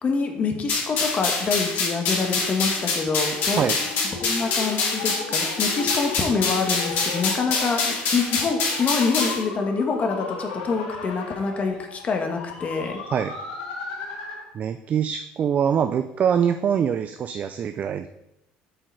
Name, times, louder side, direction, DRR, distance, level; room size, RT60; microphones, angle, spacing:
voice 1, 0.0-3.6 4.2-13.0, left 4 dB, 40° left, 4 dB, 1.3 m, -26 dB
sound 1, 0.7-9.4, left 4 dB, 60° left, 2.7 m, -25 dB
sound 2, 1.8-14.5, left 4 dB, 90° left, 1.5 m, -36 dB
voice 2, 14.5-18.1, right 8 dB, 40° right, 9 dB, 0.4 m, -24 dB
7.7 x 4.7 x 4.6 m, 0.86 s
supercardioid pair, 95°, 4 cm